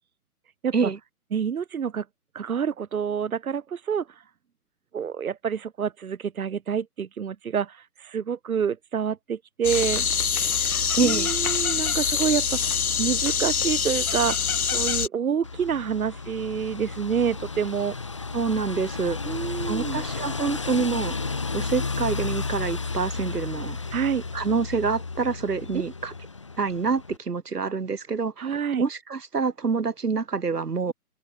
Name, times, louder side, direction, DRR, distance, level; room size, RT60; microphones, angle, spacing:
voice 1, 1.3-2.1 2.3-4.2 4.9-10.1 10.6-18.0 19.3-20.0 23.9-24.2 28.4-28.8, right 7 dB, 65° right, 1.9 m, -28 dB
sound 1, 9.6-15.1, left 6 dB, 65° left, 3.2 m, -25 dB
voice 2, 11.0-11.3 18.3-19.2 19.7-21.1 21.5-23.8 24.3-26.1 26.6-30.9, right 5 dB, 85° right, 2.3 m, -26 dB
sound 2, 15.4-27.2, left 4 dB, 20° left, 0.5 m, -33 dB
open air
figure-of-eight pair, 145°, 46 cm